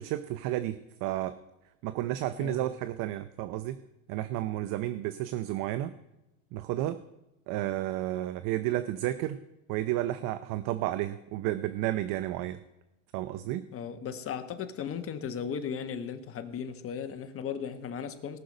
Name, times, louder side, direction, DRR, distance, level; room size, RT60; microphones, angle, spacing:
voice 1, 0.0-1.4 1.8-3.8 4.1-5.9 6.5-7.0 7.5-9.4 9.7-12.6 13.1-13.7, right 14 dB, 55° right, 12 dB, 0.7 m, -32 dB
voice 2, 13.7-18.4, left 7 dB, 35° left, 8 dB, 1.4 m, -36 dB
18.5 x 6.5 x 5.4 m, 0.94 s
supercardioid pair, 115°, 39 cm